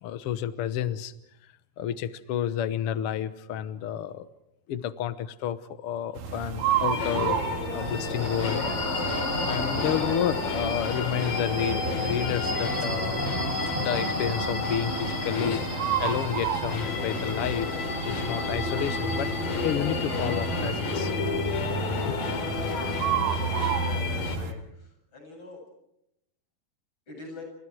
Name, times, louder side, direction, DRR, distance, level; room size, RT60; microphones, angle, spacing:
voice 1, 0.0-1.1 1.8-4.3 4.7-7.4 7.7-8.6 9.4-13.2 13.8-19.3 19.6-21.1 22.0-22.2, left 10 dB, 90° left, 13 dB, 1.2 m, -30 dB
sound 1, 6.1-24.5, right 7 dB, 70° right, 3.4 m, -32 dB
sound 2, 6.6-24.4, left 5 dB, 65° left, 4.5 m, -32 dB
sound 3, 7.7-21.1, left 1 dB, 10° left, 7.6 m, -35 dB
voice 2, 23.7-25.6 27.1-27.4, left 3 dB, 30° left, 2 dB, 8.6 m, -43 dB
30.0 x 27.5 x 4.7 m, 0.80 s
omnidirectional pair, 4.1 m